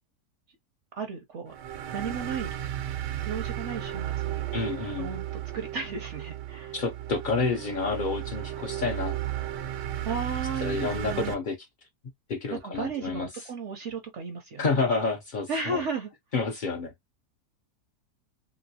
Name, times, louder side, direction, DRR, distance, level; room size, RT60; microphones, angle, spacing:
voice 1, 1.0-1.5 1.9-2.6 3.2-4.4 5.0-5.2 5.5-6.7 10.0-11.4 12.5-14.7 15.5-16.1, right 4 dB, 60° right, 0.8 m, -34 dB
sound 1, 1.5-11.3, right 12 dB, 90° right, 1.3 m, -34 dB
voice 2, 4.5-5.1 6.7-9.1 10.6-11.6 12.3-13.3 14.6-15.8 16.3-16.9, left 4 dB, 70° left, 0.4 m, -29 dB
3.0 x 2.9 x 2.7 m
omnidirectional pair, 1.8 m